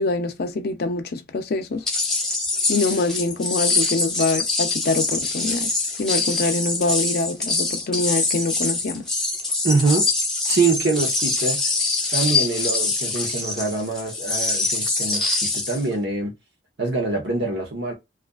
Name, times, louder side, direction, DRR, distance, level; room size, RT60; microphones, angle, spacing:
voice 1, 0.0-1.8 2.7-5.7 6.0-9.0, left 3 dB, 55° left, 0.5 m, -25 dB
sound 1, 1.9-15.8, left 3 dB, 5° left, 0.7 m, -24 dB
voice 2, 9.6-10.1 10.4-11.6 12.1-16.3 16.8-17.9, right 3 dB, 65° right, 1.0 m, -24 dB
2.4 x 2.4 x 2.3 m
head